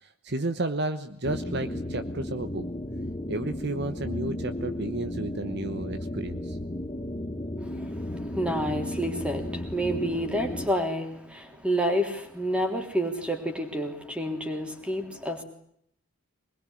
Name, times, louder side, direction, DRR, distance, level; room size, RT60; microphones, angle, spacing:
voice 1, 0.0-2.7 3.3-6.6, right 2 dB, 50° right, 10 dB, 1.1 m, -32 dB
sound 1, 1.2-10.7, left 1 dB, 20° left, 1.2 m, -34 dB
voice 2, 7.6-15.4, equal, 5° right, 4 dB, 3.4 m, -29 dB
24.5 x 21.0 x 9.9 m, 0.70 s
head